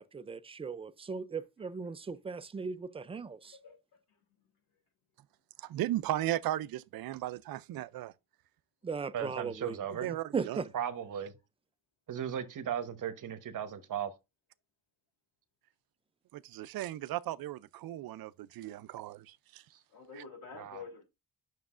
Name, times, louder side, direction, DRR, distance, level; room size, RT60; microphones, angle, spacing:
voice 1, 0.0-3.5 8.8-9.8 10.3-10.7, right 5 dB, 15° right, 0.4 m, -37 dB
voice 2, 3.4-3.7 4.1-4.5 19.9-21.0, left 5 dB, 75° left, 3.1 m, -49 dB
voice 3, 5.6-8.1 10.0-10.6 16.3-19.6, right 14 dB, 75° right, 0.5 m, -36 dB
voice 4, 9.1-10.1 10.7-11.3 12.1-14.1 20.5-20.8, right 9 dB, 55° right, 1.1 m, -36 dB
9.3 x 6.3 x 2.5 m
cardioid pair, 130°, 37 cm